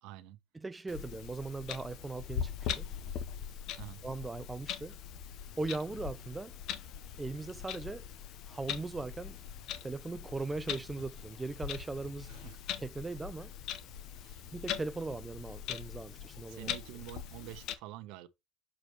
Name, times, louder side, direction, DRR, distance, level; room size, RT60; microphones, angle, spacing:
voice 1, 0.0-0.4 3.8-4.0 12.3-12.6 14.2-14.5 16.5-18.3, right 15 dB, 75° right, 0.8 m, -47 dB
voice 2, 0.5-2.9 4.0-5.0 5.6-6.5 7.2-8.0 8.5-9.4 9.8-12.3 12.8-13.5 14.5-16.7, right 3 dB, 15° right, 0.4 m, -39 dB
Clock, 0.9-17.7, left 9 dB, 65° left, 1.0 m, -41 dB
6.7 x 4.9 x 3.0 m
supercardioid pair, 95°, 0 cm